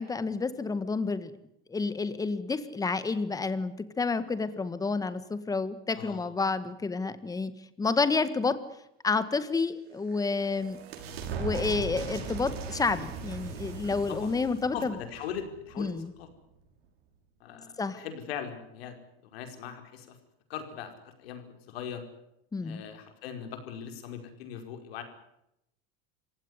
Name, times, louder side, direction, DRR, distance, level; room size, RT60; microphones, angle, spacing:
voice 1, 0.0-1.3 1.7-7.5 7.8-8.6 9.0-10.8 11.4-14.9 15.8-16.1 17.8-18.0 22.5-22.8, left 4 dB, 10° left, 13 dB, 1.6 m, -29 dB
voice 2, 5.9-6.2 13.9-14.3 14.7-15.9 16.2-16.3 17.4-18.9 19.2-20.2 20.5-20.9 21.2-22.0 22.6-25.0, left 8 dB, 90° left, 6 dB, 5.1 m, -40 dB
sound 1, 9.8-16.2, right 5 dB, 85° right, 5.9 m, -39 dB
27.5 x 16.5 x 9.8 m, 0.82 s
supercardioid pair, 145°, 30 cm